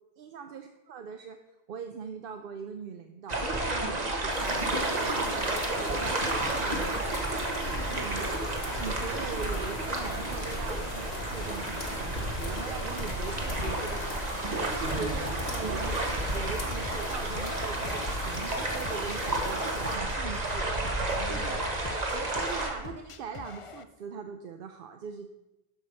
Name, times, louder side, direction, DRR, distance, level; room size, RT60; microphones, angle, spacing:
voice 1, 0.2-1.4 1.7-21.7 22.1-25.3, right 6 dB, 60° right, 6 dB, 0.8 m, -41 dB
sound 1, 3.3-22.7, right 2 dB, 40° right, 1.3 m, -31 dB
sound 2, 4.3-20.0, left 3 dB, 70° left, 1.5 m, -40 dB
sound 3, 15.8-23.8, left 6 dB, 45° left, 0.4 m, -46 dB
12.5 x 5.1 x 5.4 m, 0.98 s
omnidirectional pair, 1.1 m